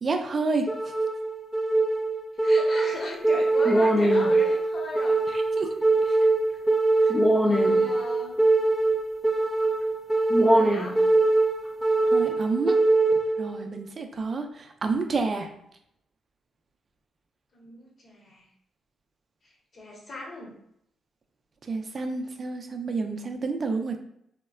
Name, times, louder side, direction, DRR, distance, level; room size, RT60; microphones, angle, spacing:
voice 1, 0.0-0.7 5.6-5.8 6.1-6.2 12.1-12.8 13.4-15.5 21.6-24.0, right 4 dB, 45° right, 6 dB, 0.4 m, -29 dB
sound 1, 0.7-13.7, right 2 dB, 10° left, 0.5 m, -22 dB
voice 2, 2.4-5.2 7.4-8.4 10.5-11.0 17.5-18.5 19.4-20.5, left 2 dB, 50° left, -2 dB, 1.0 m, -38 dB
3.6 x 2.1 x 2.3 m, 0.73 s
supercardioid pair, 65°, 0 cm